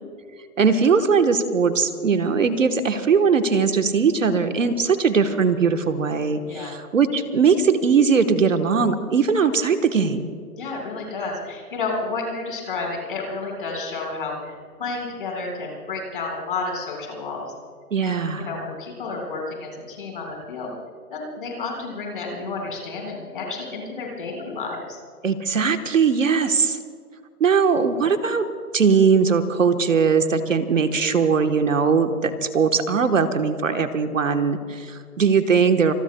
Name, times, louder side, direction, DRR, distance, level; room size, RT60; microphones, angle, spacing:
voice 1, 0.6-10.3 17.9-18.5 25.2-26.8 27.4-28.5 28.7-35.9, right 5 dB, 55° right, 8 dB, 1.2 m, -20 dB
voice 2, 10.6-17.5 18.0-20.7 21.1-25.0, left 3 dB, 35° left, 0 dB, 4.6 m, -31 dB
27.0 x 21.0 x 2.2 m, 2.1 s
hypercardioid pair, 175°, 46 cm